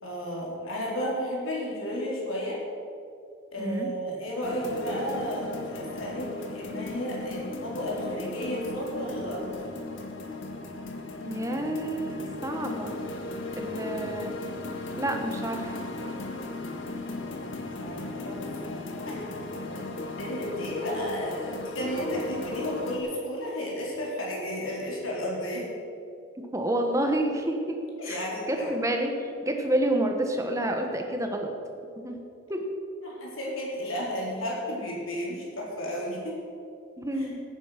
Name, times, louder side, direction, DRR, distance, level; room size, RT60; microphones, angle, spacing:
voice 1, 0.0-2.6 3.5-9.5 17.8-18.5 19.1-19.2 19.7-25.7 28.0-28.7 33.0-36.4 37.1-37.3, equal, 85° left, -3 dB, 4.2 m, -33 dB
voice 2, 3.6-3.9 11.2-12.9 13.5-14.3 15.0-15.8 26.5-27.8 28.0-31.5 32.0-32.2 32.5-32.7 37.0-37.4, right 1 dB, 15° right, 3 dB, 1.3 m, -29 dB
sound 1, 4.4-23.0, left 2 dB, 70° left, 1.6 m, -36 dB
16.0 x 9.6 x 5.9 m, 2.6 s
head